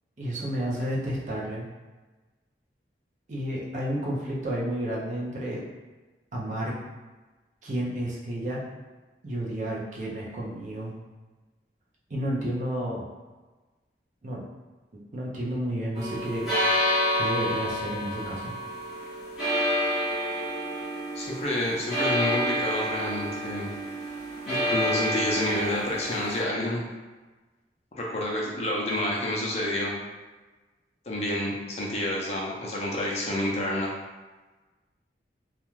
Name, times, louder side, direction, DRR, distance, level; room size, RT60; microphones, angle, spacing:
voice 1, 0.2-1.7 3.3-5.6 6.3-6.7 7.6-8.6 9.2-10.9 12.1-13.0 14.2-14.4 14.9-16.5 17.1-18.5, right 1 dB, 45° right, -5 dB, 0.5 m, -31 dB
sound 1, 15.9-26.4, equal, ahead, 0.9 m, -29 dB
voice 2, 21.1-23.7 24.5-26.8 27.9-30.0 31.1-33.9, left 1 dB, 35° left, -3 dB, 0.4 m, -29 dB
2.4 x 2.2 x 3.0 m, 1.2 s
head